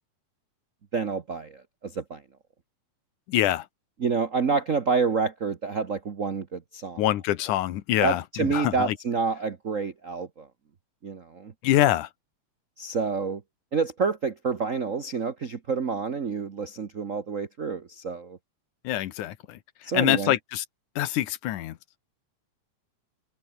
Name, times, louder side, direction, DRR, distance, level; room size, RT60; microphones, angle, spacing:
voice 1, 0.9-2.2 4.0-7.0 8.0-10.5 11.0-11.5 12.8-13.4 13.7-18.4 19.8-20.3, right 5 dB, 70° right, 0.7 m, -28 dB
voice 2, 3.3-3.7 7.0-9.0 11.6-12.1 18.8-20.6 21.0-21.8, left 13 dB, 90° left, 2.7 m, -25 dB
omnidirectional pair, 3.4 m